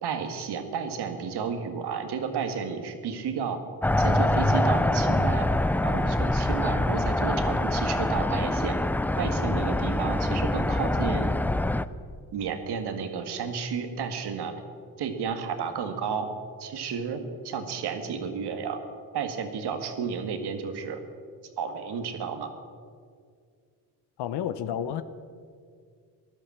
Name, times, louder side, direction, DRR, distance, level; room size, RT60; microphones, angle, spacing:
voice 1, 0.0-3.6 4.0-5.5 5.8-8.8 9.2-11.3 12.3-14.5 15.0-16.3 16.6-18.8 19.1-21.0 21.6-22.5, right 6 dB, 75° right, 7 dB, 1.8 m, -32 dB
sound 1, 3.8-11.9, left 1 dB, 5° left, 0.4 m, -25 dB
voice 2, 24.2-25.0, left 9 dB, 80° left, 12 dB, 0.8 m, -30 dB
14.5 x 11.0 x 7.3 m, 2.1 s
cardioid pair, 80°, 40 cm